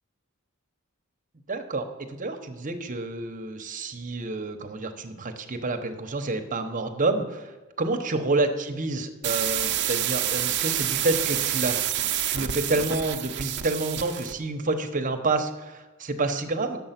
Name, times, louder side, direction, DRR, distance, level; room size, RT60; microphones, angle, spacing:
voice 1, 1.5-11.9 12.3-16.8, right 2 dB, 40° right, 6 dB, 1.0 m, -28 dB
sound 1, 9.2-14.4, right 12 dB, 55° right, 0.6 m, -28 dB
10.0 x 7.4 x 5.9 m, 1.1 s
head